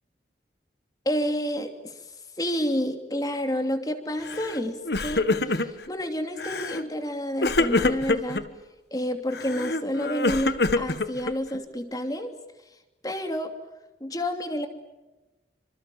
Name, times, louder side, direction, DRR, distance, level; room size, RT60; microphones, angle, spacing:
voice 1, 1.0-1.9 2.4-8.4 8.9-12.3 13.0-13.5 14.0-14.7, equal, 20° left, 6 dB, 2.8 m, -29 dB
Crying sobbing, 4.3-4.6 4.8-5.9 6.4-6.8 7.4-8.4 9.3-11.6, left 2 dB, 65° left, 1.4 m, -26 dB
27.5 x 26.0 x 7.3 m, 1.1 s
head